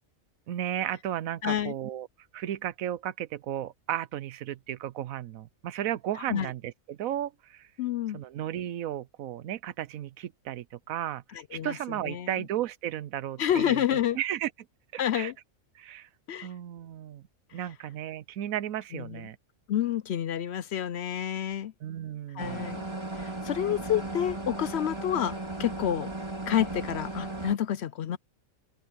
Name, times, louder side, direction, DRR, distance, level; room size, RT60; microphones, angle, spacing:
voice 1, 0.5-2.1 2.3-7.7 8.1-11.2 11.5-14.5 14.9-15.3 15.8-16.1 16.4-17.2 17.5-19.4 21.8-22.7, right 11 dB, 90° right, 1.1 m, -34 dB
voice 2, 1.4-1.7 6.3-6.5 7.8-8.2 11.3-11.8 12.0-12.3 13.4-14.2 15.0-15.3 16.3-16.5 18.9-19.2 19.7-21.7 22.3-22.8 23.1-26.1 26.5-28.2, left 10 dB, 65° left, 0.7 m, -29 dB
sound 1, 22.4-27.5, right 2 dB, 20° right, 2.6 m, -36 dB
omnidirectional pair, 1.4 m